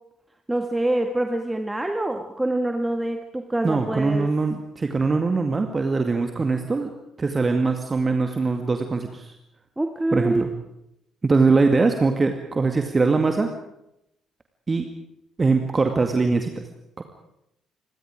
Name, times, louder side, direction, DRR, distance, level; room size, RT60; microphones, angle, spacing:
voice 1, 0.5-4.3 9.8-10.4, right 1 dB, 10° right, 5 dB, 1.7 m, -25 dB
voice 2, 3.6-6.9 7.2-9.3 10.1-10.5 11.2-13.5 14.7-14.9 15.4-16.7 17.0-17.1, right 3 dB, 30° right, 5 dB, 2.0 m, -22 dB
27.5 x 22.5 x 5.0 m, 0.83 s
figure-of-eight pair, 45°, 0 cm